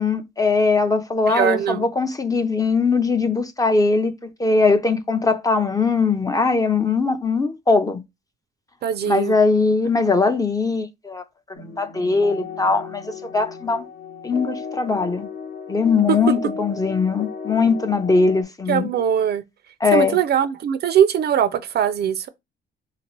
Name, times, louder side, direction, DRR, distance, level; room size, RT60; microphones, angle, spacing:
voice 1, 0.0-8.0 9.1-11.2 11.6-13.9 14.2-15.3 15.7-18.9 19.8-20.2, left 4 dB, 20° left, 0.5 m, -20 dB
voice 2, 1.3-1.9 8.8-9.3 16.1-16.2 18.7-19.4 19.9-22.3, right 9 dB, 55° right, 0.4 m, -21 dB
sound 1, 11.5-18.4, left 5 dB, 65° left, 1.0 m, -35 dB
2.9 x 2.9 x 2.9 m
cardioid pair, 90°, 20 cm